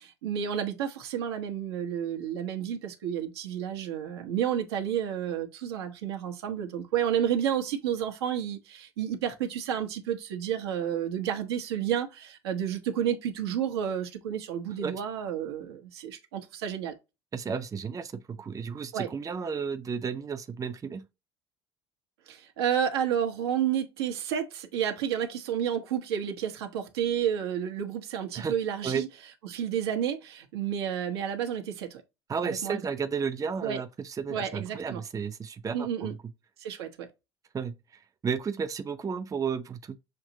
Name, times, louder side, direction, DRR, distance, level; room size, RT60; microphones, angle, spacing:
voice 1, 0.0-16.9 18.9-19.1 22.3-29.1 29.4-32.0 32.4-32.8 33.6-33.8 34.3-35.0 35.7-36.1 36.6-37.1, right 9 dB, 80° right, 1.0 m, -31 dB
voice 2, 17.3-21.1 28.3-28.6 28.8-29.0 32.3-36.2 37.5-40.0, right 6 dB, 25° right, 0.6 m, -33 dB
6.5 x 2.8 x 2.8 m
hypercardioid pair, 65°, 13 cm